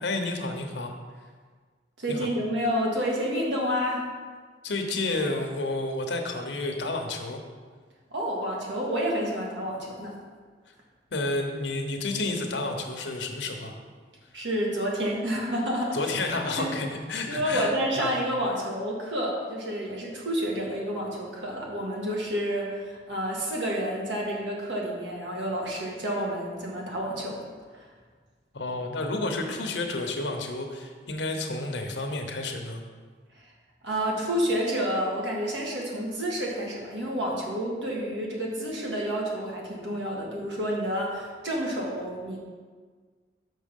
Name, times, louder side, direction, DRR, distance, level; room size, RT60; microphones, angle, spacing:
voice 1, 0.0-0.9 2.1-2.3 4.6-7.4 11.1-13.8 15.9-18.1 28.5-32.8, left 2 dB, 70° left, 4 dB, 1.0 m, -30 dB
voice 2, 2.0-4.0 8.1-10.1 14.3-16.1 16.6-16.7 17.3-27.4 27.7-27.9 33.8-42.4, equal, 75° right, -3 dB, 1.9 m, -29 dB
6.2 x 6.0 x 5.4 m, 1.6 s
head